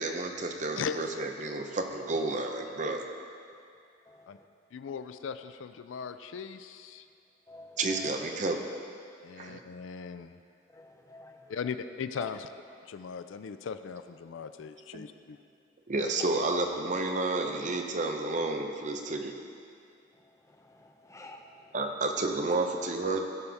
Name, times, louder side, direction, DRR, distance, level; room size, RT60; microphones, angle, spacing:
voice 1, 0.0-3.0 7.8-8.7 9.4-9.6 14.9-15.0 15.9-19.3 21.7-23.2, right 2 dB, 40° right, 4 dB, 0.6 m, -31 dB
voice 2, 0.8-1.1 4.3-4.4 4.7-7.0 9.2-10.4 11.5-12.5 12.9-15.4, left 6 dB, 80° left, 11 dB, 0.4 m, -38 dB
voice 3, 4.1-4.5 7.5-8.1 10.7-11.6 12.2-12.3 16.0-16.1 20.1-21.9, left 1 dB, 15° left, 3 dB, 0.5 m, -50 dB
16.0 x 5.5 x 3.4 m, 2.4 s
head